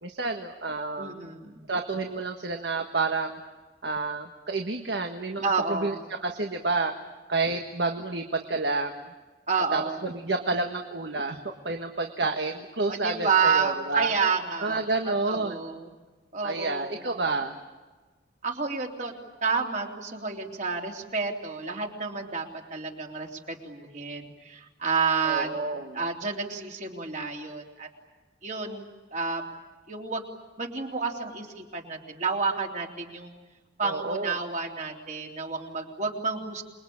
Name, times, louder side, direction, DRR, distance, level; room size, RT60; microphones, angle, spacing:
voice 1, 0.0-1.2 1.7-3.4 3.8-6.9 7.3-9.0 9.5-14.1 14.6-15.8 16.4-17.5 25.2-26.0 33.8-34.3, right 3 dB, 75° right, 4 dB, 1.6 m, -29 dB
voice 2, 1.0-1.6 5.4-6.0 9.5-10.0 12.9-15.9 16.3-17.1 18.4-19.1 19.4-22.4 22.7-25.5 25.9-27.9 28.4-28.9 29.1-29.4 29.9-30.3 30.6-33.3 33.8-36.6, right 5 dB, 45° right, 1 dB, 3.4 m, -30 dB
27.5 x 22.0 x 8.7 m, 1.3 s
head